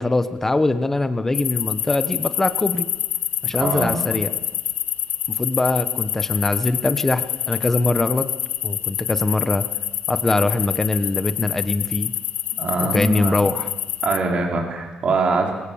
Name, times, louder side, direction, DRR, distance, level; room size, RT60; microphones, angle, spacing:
voice 1, 0.0-2.9 3.4-4.3 5.4-8.3 8.6-9.6 10.1-12.1 12.9-13.7, left 2 dB, 15° left, 11 dB, 1.0 m, -22 dB
sound 1, 1.3-14.2, left 11 dB, 90° left, 1.0 m, -26 dB
voice 2, 3.5-4.2 12.5-13.4 14.0-15.5, right 3 dB, 45° right, 1 dB, 4.0 m, -23 dB
25.5 x 22.0 x 7.2 m, 1.1 s
cardioid pair, 170°, 3 cm